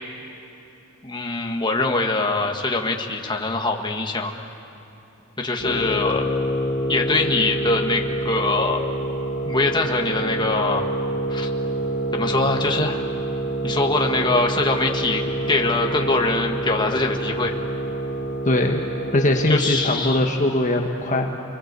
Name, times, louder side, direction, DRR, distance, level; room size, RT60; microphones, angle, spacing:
voice 1, 1.0-4.3 5.4-6.2 6.9-8.8 9.4-11.0 11.3-11.5 12.1-13.1 13.6-17.5 19.5-20.2, left 3 dB, 20° left, 2 dB, 1.6 m, -23 dB
sound 1, 5.6-20.2, right 1 dB, 55° left, 2.1 m, -27 dB
voice 2, 18.5-18.8 19.1-21.4, left 1 dB, 40° left, 2 dB, 1.4 m, -21 dB
29.5 x 22.5 x 8.3 m, 2.8 s
head